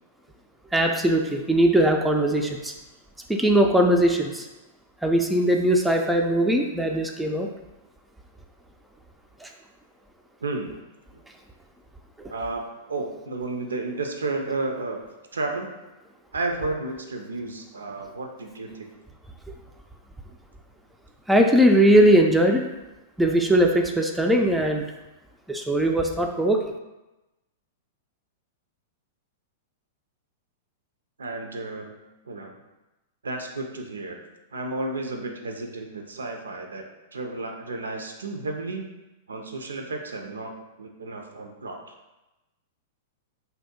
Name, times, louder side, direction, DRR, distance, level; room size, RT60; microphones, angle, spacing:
voice 1, 0.7-2.7 3.3-4.5 5.0-7.5 9.4-9.5 12.2-12.3 21.3-22.7 23.2-24.8 25.5-26.6, right 1 dB, 5° right, 2 dB, 0.3 m, -20 dB
voice 2, 10.4-10.7 11.1-11.2 12.3-12.6 12.9-15.0 15.3-15.7 16.3-18.9 31.2-32.0 32.2-32.5 33.2-34.2 34.5-36.8 37.1-38.8 39.3-41.8, right 2 dB, 80° right, 3 dB, 0.4 m, -32 dB
2.6 x 2.1 x 3.7 m, 1.0 s
figure-of-eight pair, 100°, 0 cm